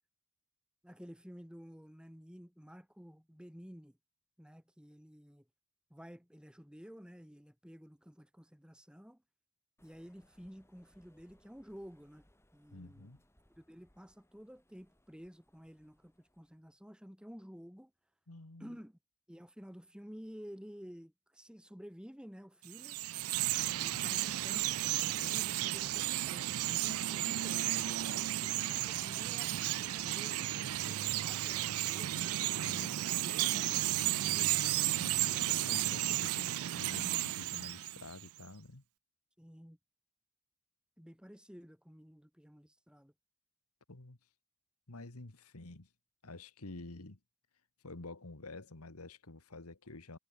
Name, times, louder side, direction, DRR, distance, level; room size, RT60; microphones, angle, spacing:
voice 1, 0.8-4.0 4.4-5.5 5.9-9.2 9.8-13.1 13.6-17.9 18.6-19.0 19.3-23.0 23.7-32.4 33.0-34.7 39.4-39.8 41.0-43.1, equal, 5° right, 2.4 m, -52 dB
sound 1, 9.8-16.7, left 1 dB, 10° left, 6.6 m, -70 dB
voice 2, 12.7-13.2 18.3-18.8 23.9-24.0 32.6-33.0 34.7-38.8 43.9-44.2 44.9-45.9 46.2-47.2 47.8-50.2, left 2 dB, 90° left, 1.9 m, -49 dB
Chirp tweet, 22.6-38.3, right 14 dB, 70° right, 0.4 m, -33 dB
head